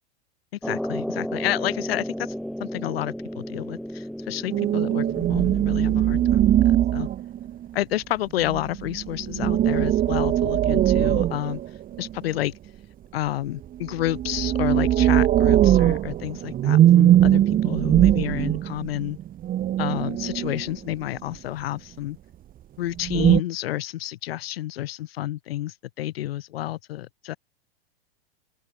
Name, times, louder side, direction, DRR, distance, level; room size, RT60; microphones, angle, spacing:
voice 1, 0.6-2.3 2.6-7.1 7.7-11.6 12.0-12.5 13.1-19.2 19.8-22.2 22.8-27.4, left 14 dB, 70° left, 2.0 m, -30 dB
sound 1, 0.6-6.8, equal, ahead, 4.6 m, -33 dB
sound 2, 4.5-7.7 8.4-12.2 13.8-20.9 23.0-23.4, right 12 dB, 30° right, 1.8 m, -21 dB
open air
hypercardioid pair, 125°, 31 cm